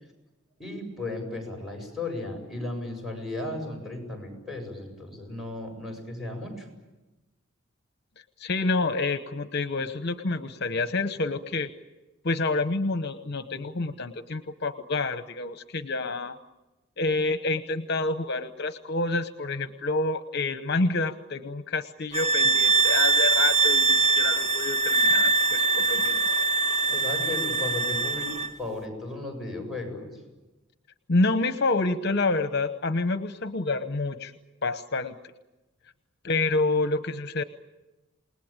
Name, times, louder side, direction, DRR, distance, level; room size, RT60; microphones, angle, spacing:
voice 1, 0.6-6.7 26.9-28.3 28.6-30.1, left 2 dB, ahead, 2 dB, 7.7 m, -35 dB
voice 2, 8.4-11.7 12.2-16.4 17.0-26.3 31.1-34.3 34.6-35.1 36.2-37.4, left 3 dB, 55° left, 10 dB, 1.0 m, -28 dB
sound 1, 22.1-28.5, right 3 dB, 35° right, 1.7 m, -23 dB
28.5 x 19.5 x 8.9 m, 1.1 s
head